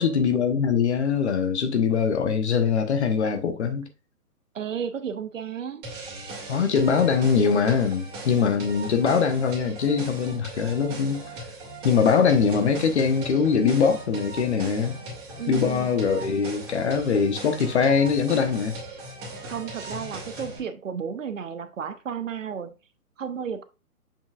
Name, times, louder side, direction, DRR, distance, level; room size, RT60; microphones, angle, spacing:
voice 1, 0.0-3.9 6.5-11.2 11.8-15.0 15.5-18.8, left 6 dB, 45° left, 1.2 m, -22 dB
voice 2, 4.5-5.9 15.4-15.9 19.5-22.7 23.2-23.6, right 7 dB, 55° right, 0.9 m, -33 dB
sound 1, 5.8-20.6, right 1 dB, 25° right, 2.7 m, -39 dB
7.1 x 5.8 x 2.5 m
figure-of-eight pair, 130°, 45 cm